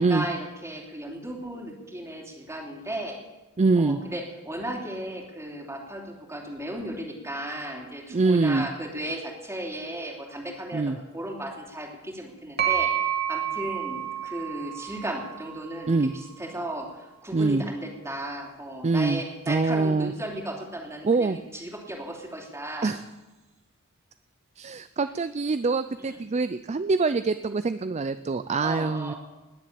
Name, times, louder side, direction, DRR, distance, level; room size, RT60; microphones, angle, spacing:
voice 1, 0.0-3.2 3.7-22.9 26.0-26.2 28.6-29.2, right 1 dB, 15° right, 1 dB, 2.9 m, -35 dB
voice 2, 3.6-4.0 8.1-8.7 10.7-11.0 15.9-16.1 17.3-17.6 18.8-19.2 19.5-20.1 21.0-21.4 22.8-23.0 24.6-29.1, right 3 dB, 35° right, 12 dB, 0.4 m, -24 dB
sound 1, 12.6-16.3, right 10 dB, 55° right, 2.3 m, -30 dB
20.0 x 7.3 x 8.5 m, 1.1 s
head